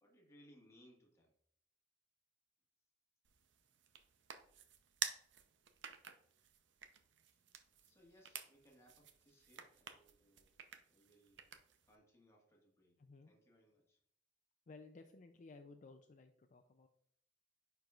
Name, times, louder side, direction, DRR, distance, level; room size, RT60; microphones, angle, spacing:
voice 1, 0.0-1.3 7.8-10.5 10.9-11.4 11.8-13.0 13.3-14.0, equal, 15° left, -1 dB, 1.6 m, -67 dB
sound 1, 3.3-12.0, right 8 dB, 85° right, 0.7 m, -50 dB
voice 2, 13.0-13.3 14.7-16.9, left 3 dB, 45° left, 6 dB, 0.4 m, -57 dB
10.0 x 4.6 x 2.4 m, 0.68 s
head